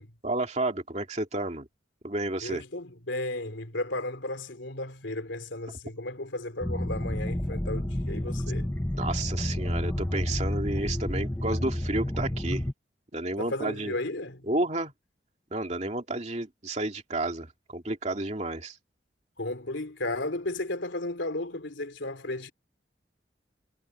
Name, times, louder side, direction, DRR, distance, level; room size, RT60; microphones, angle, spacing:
voice 1, 0.2-1.7 2.0-2.6 8.9-12.6 13.1-13.9 14.5-14.9 15.5-18.8, right 2 dB, 35° right, 2.7 m, -31 dB
voice 2, 2.4-8.7 13.4-14.5 19.4-22.5, left 2 dB, 80° left, 3.2 m, -34 dB
sound 1, 6.6-12.7, left 1 dB, 10° left, 0.7 m, -30 dB
head